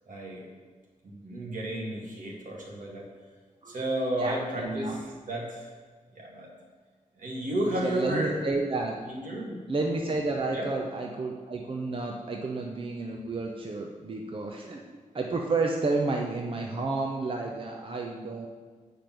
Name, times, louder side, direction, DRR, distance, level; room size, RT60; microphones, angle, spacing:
voice 1, 0.1-0.5 1.0-3.1 3.7-5.7 6.1-6.5 7.2-8.4 9.0-9.6 10.5-10.7, right 1 dB, 75° right, -2 dB, 2.1 m, -32 dB
voice 2, 4.2-5.0 7.8-8.9 9.7-18.5, right 3 dB, 40° right, 1 dB, 0.7 m, -31 dB
8.9 x 5.2 x 6.1 m, 1.5 s
wide cardioid pair, 115°, 13 cm